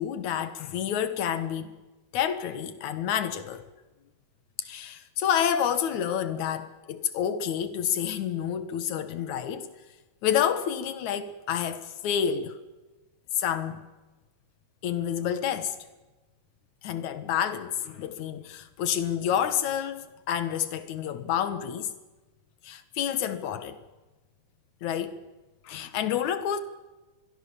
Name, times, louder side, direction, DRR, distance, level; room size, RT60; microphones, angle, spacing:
voice 1, 0.0-1.8 2.1-3.7 4.6-9.7 10.2-12.6 13.4-13.9 14.8-15.8 16.8-21.9 22.6-23.8 24.8-25.2 25.6-26.6, left 9 dB, 70° left, 2.8 m, -29 dB
26.0 x 21.5 x 7.1 m
omnidirectional pair, 3.6 m